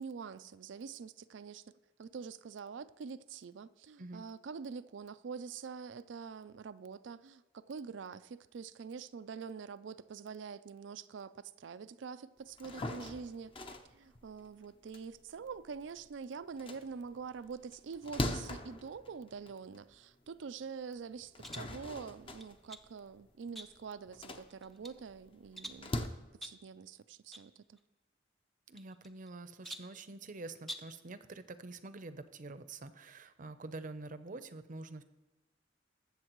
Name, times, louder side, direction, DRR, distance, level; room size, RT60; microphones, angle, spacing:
voice 1, 0.0-1.6 2.0-13.5 13.9-25.9 26.4-27.8, right 5 dB, 90° right, 0.4 m, -45 dB
sound 1, 12.5-16.0 16.4-19.9 20.4-20.5 21.1-26.1, left 1 dB, 30° left, 0.7 m, -42 dB
sound 2, 21.4-21.8 22.4-22.9 23.6-24.0 24.5-25.0 25.6-25.9 26.4-26.7 27.3-27.5 27.8-27.9 28.8-29.3 29.6-30.0 30.6-31.0, equal, ahead, 0.6 m, -47 dB
voice 2, 28.7-35.0, right 2 dB, 45° right, 0.6 m, -46 dB
20.5 x 7.3 x 3.0 m
head